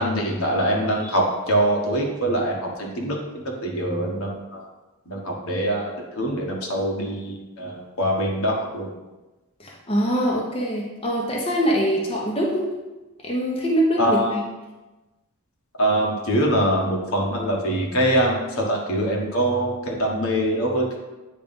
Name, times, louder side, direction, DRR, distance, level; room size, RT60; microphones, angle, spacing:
voice 1, 0.0-4.6 5.1-8.9 14.0-14.3 15.8-21.0, right 1 dB, 65° left, -1 dB, 1.4 m, -23 dB
voice 2, 9.6-12.6 13.2-14.4, equal, 25° left, -3 dB, 1.0 m, -23 dB
8.7 x 3.3 x 5.3 m, 1.1 s
head